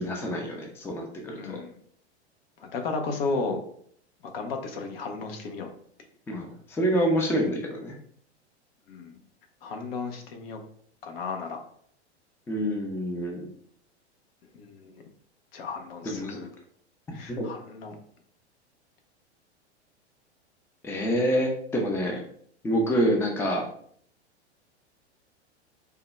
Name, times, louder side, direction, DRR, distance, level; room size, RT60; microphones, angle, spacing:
voice 1, 0.0-1.6 6.3-8.0 12.5-13.5 16.0-16.4 17.3-17.4 20.8-22.2 22.6-23.6, equal, 5° left, 1 dB, 0.4 m, -27 dB
voice 2, 1.4-1.7 2.6-3.6 4.2-5.7 8.9-9.1 9.6-10.6 11.0-11.6 14.5-15.0 15.5-16.5 17.1-18.0 22.9-23.1, left 4 dB, 60° left, 5 dB, 0.7 m, -34 dB
3.5 x 2.1 x 3.1 m, 0.62 s
hypercardioid pair, 100°, 34 cm